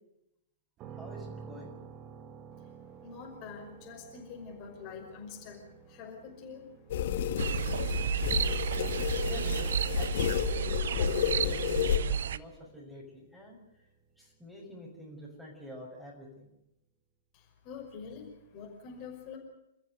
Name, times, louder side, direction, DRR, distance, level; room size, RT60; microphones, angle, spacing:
sound 1, 0.8-14.5, right 6 dB, 25° right, 2.0 m, -52 dB
voice 1, 0.9-1.7 9.2-13.6 14.2-16.5, left 1 dB, ahead, -1 dB, 6.6 m, -47 dB
voice 2, 3.0-5.6 5.9-6.6 17.3-19.4, left 6 dB, 35° left, 0 dB, 5.6 m, -45 dB
sound 2, 6.9-12.0, left 9 dB, 50° left, 1.6 m, -31 dB
sound 3, 7.4-12.4, right 9 dB, 55° right, 0.7 m, -32 dB
28.5 x 14.0 x 7.9 m, 0.84 s
figure-of-eight pair, 110°, 0 cm